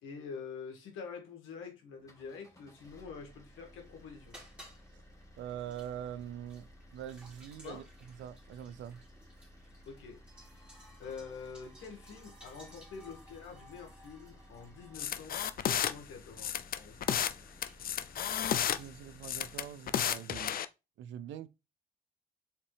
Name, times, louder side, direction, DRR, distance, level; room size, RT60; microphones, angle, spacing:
voice 1, 0.0-4.4 7.6-7.9 9.8-10.2 10.5-10.6 11.0-15.4 15.6-17.0, left 5 dB, 85° left, 1.7 m, -46 dB
sound 1, 1.9-19.8, equal, 15° left, 1.7 m, -57 dB
sound 2, 3.4-18.9, equal, 5° right, 2.7 m, -59 dB
voice 2, 5.4-9.0 18.7-20.6 21.0-21.5, right 10 dB, 75° right, 0.5 m, -44 dB
sound 3, 14.9-15.9 16.4-17.3 17.6-18.8 19.2-20.6, left 9 dB, 50° left, 0.4 m, -32 dB
4.3 x 3.7 x 3.3 m
cardioid pair, 90°, 20 cm